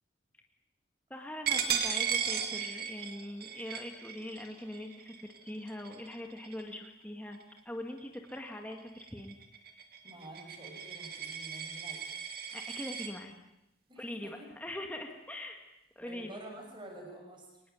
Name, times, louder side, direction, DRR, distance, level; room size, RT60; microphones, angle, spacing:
voice 1, 1.1-7.4 7.7-9.4 9.7-9.8 12.5-13.4 14.0-15.6 16.0-16.4, left 1 dB, 10° left, 3 dB, 1.9 m, -42 dB
Coin (dropping), 1.5-6.9 7.3-7.6 8.0-13.1, right 7 dB, 50° right, 2.6 m, -36 dB
voice 2, 10.0-12.1 13.9-14.5 16.0-17.6, right 1 dB, 25° right, 2 dB, 6.8 m, -48 dB
24.0 x 19.5 x 9.4 m, 0.91 s
head